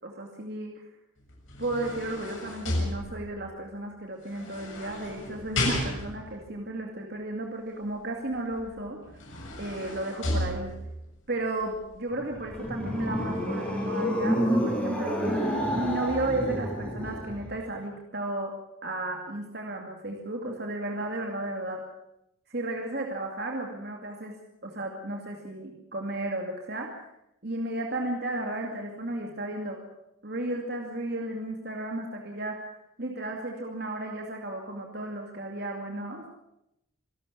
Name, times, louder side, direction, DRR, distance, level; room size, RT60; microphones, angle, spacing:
voice 1, 0.0-0.8 1.6-9.0 9.6-10.7 11.3-15.2 15.7-18.5 18.8-21.8 22.5-24.4 24.6-26.9 27.4-29.8 30.2-32.7 33.0-36.2, right 2 dB, 50° right, 1 dB, 2.6 m, -34 dB
sound 1, 1.3-3.5 4.3-6.3 8.6-8.7 9.1-11.1 11.6-11.8, left 1 dB, 70° left, 7.2 m, -33 dB
sound 2, 12.2-17.5, equal, 5° left, 5.4 m, -29 dB
26.5 x 12.5 x 8.5 m, 0.84 s
head